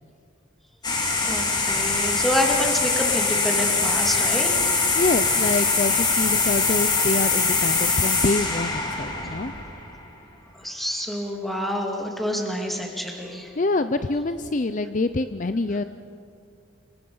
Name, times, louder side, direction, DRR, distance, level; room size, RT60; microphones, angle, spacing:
sound 1, 0.8-10.0, left 4 dB, 20° left, 2.6 m, -23 dB
voice 1, 1.2-4.9 10.5-13.5, left 1 dB, ahead, 1 dB, 2.4 m, -28 dB
voice 2, 4.9-9.5 13.6-15.8, left 3 dB, 40° left, 11 dB, 0.5 m, -26 dB
26.5 x 23.0 x 5.6 m, 2.4 s
head